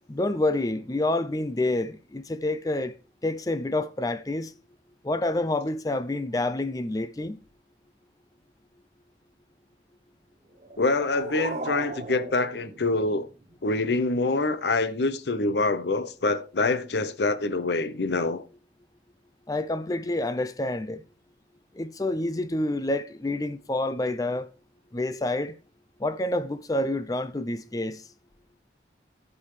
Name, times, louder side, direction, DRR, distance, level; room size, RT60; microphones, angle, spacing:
voice 1, 0.1-2.9 3.2-4.5 5.0-7.4 19.5-21.0 21.7-24.5 24.9-25.5 26.0-28.0, left 2 dB, 20° left, 0.4 m, -28 dB
sound 1, 10.6-13.6, right 2 dB, 35° right, 0.9 m, -37 dB
voice 2, 10.8-13.3 13.6-18.4, left 3 dB, 75° left, 0.7 m, -25 dB
14.5 x 5.5 x 3.2 m
head